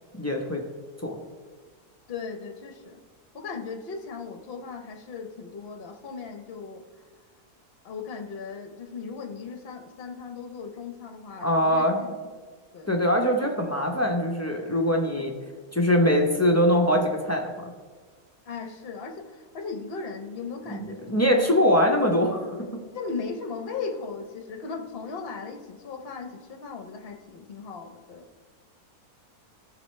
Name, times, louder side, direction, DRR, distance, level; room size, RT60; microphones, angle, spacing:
voice 1, 0.2-0.6 1.0-1.2 11.4-12.0 12.9-15.3 15.7-17.5 20.7-22.6, equal, 15° left, 1 dB, 0.5 m, -22 dB
voice 2, 2.1-3.0 3.3-6.8 7.8-12.1 12.7-12.9 15.2-15.5 18.5-21.6 22.9-28.3, left 5 dB, 45° left, 6 dB, 0.9 m, -37 dB
14.5 x 6.0 x 3.2 m, 1.5 s
omnidirectional pair, 1.6 m